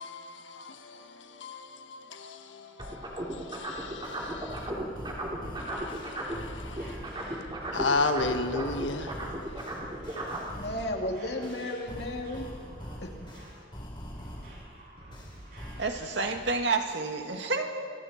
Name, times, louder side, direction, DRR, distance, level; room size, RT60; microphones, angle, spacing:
voice 1, 0.0-4.7 5.6-7.0 7.7-9.1, left 3 dB, 85° left, 1.4 m, -34 dB
sound 1, 2.8-6.5 6.7-10.5, right 1 dB, 25° right, 3.5 m, -35 dB
sound 2, 3.5-3.6 4.0-7.3 7.7-11.0 11.4-14.7 15.1-16.0, equal, 25° left, 4.0 m, -44 dB
sound 3, 5.0-16.5, right 1 dB, 55° right, 8.0 m, -50 dB
voice 2, 10.6-12.5 13.0-13.1, left 1 dB, 60° left, 2.9 m, -33 dB
voice 3, 15.8-17.9, right 3 dB, 70° right, 2.0 m, -29 dB
29.5 x 24.5 x 4.4 m
head